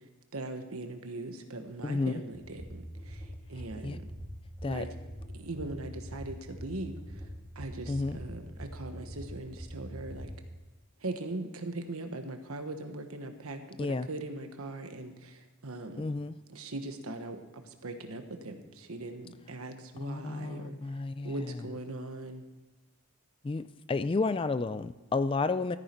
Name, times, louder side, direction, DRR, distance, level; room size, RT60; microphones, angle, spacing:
voice 1, 0.3-4.1 4.6-5.0 5.3-7.2 7.5-10.3 11.0-16.0 16.5-21.0 21.2-22.4, right 2 dB, 75° right, 6 dB, 1.3 m, -40 dB
voice 2, 1.8-2.2 3.8-4.0 4.6-4.9 7.9-8.2 13.8-14.1 16.0-16.3 20.0-21.4 23.4-25.8, left 3 dB, 25° left, 13 dB, 0.3 m, -31 dB
sound 1, 2.3-10.3, equal, 10° left, 2.5 m, -43 dB
14.0 x 9.4 x 4.5 m, 1.2 s
head